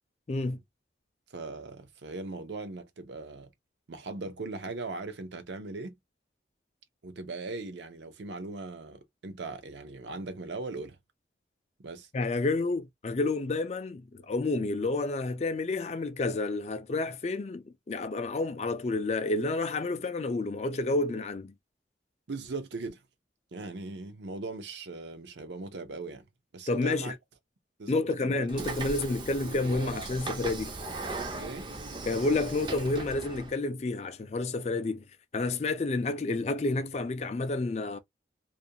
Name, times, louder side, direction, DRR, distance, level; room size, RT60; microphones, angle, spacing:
voice 1, 1.3-3.5 3.9-5.9 7.0-11.0 11.8-12.1 22.3-23.0 23.5-26.2 26.5-27.2 27.8-28.9 29.4-30.2 31.4-31.7, right 3 dB, 70° right, 0.6 m, -39 dB
voice 2, 12.1-21.5 26.7-27.1 27.9-30.7 32.1-35.0 35.3-38.0, left 2 dB, 35° left, 0.3 m, -30 dB
Train / Sliding door, 28.5-33.5, right 2 dB, 25° right, 0.4 m, -38 dB
2.4 x 2.2 x 2.6 m
head